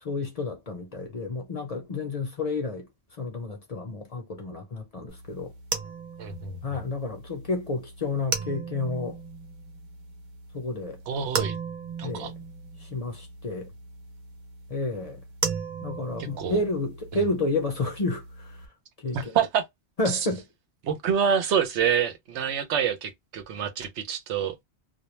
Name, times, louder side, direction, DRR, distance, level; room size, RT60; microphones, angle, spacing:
voice 1, 0.0-2.9 3.2-5.5 6.6-9.2 10.5-11.0 12.0-12.3 12.8-13.7 14.7-15.2 15.8-18.6 19.0-19.4 20.0-20.4, left 2 dB, 45° left, 0.5 m, -30 dB
sound 1, 5.1-18.7, right 5 dB, 55° right, 0.6 m, -37 dB
voice 2, 6.2-6.8 11.1-11.6 12.0-12.3 16.2-16.6 19.1-19.6 20.1-20.2 20.8-24.6, right 7 dB, 90° right, 0.9 m, -27 dB
2.2 x 2.1 x 3.0 m
omnidirectional pair, 1.1 m